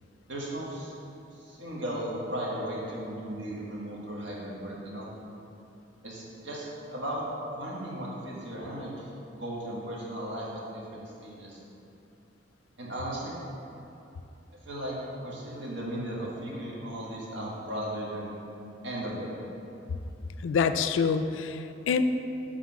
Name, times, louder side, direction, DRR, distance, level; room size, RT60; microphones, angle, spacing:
voice 1, 0.3-0.9 1.3-5.1 6.0-7.2 7.5-11.6 12.8-13.3 14.6-18.3 18.8-19.3, right 1 dB, 85° right, -5 dB, 1.6 m, -36 dB
voice 2, 20.4-22.0, left 6 dB, 85° left, 10 dB, 0.3 m, -26 dB
7.4 x 3.6 x 5.8 m, 2.8 s
head